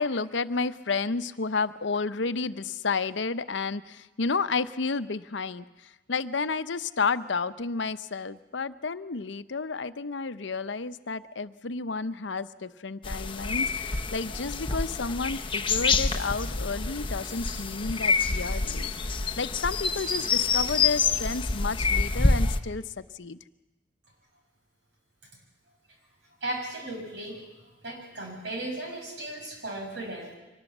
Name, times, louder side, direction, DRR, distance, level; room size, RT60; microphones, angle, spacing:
voice 1, 0.0-23.4, left 4 dB, 75° left, 13 dB, 0.8 m, -31 dB
sound 1, 13.0-22.6, left 4 dB, 25° left, 0.9 m, -27 dB
Bell, 17.0-19.8, left 3 dB, 35° right, 7.3 m, -52 dB
voice 2, 26.4-27.4 27.8-30.3, right 1 dB, 65° right, 1 dB, 6.5 m, -36 dB
24.0 x 19.5 x 7.3 m, 1.1 s
head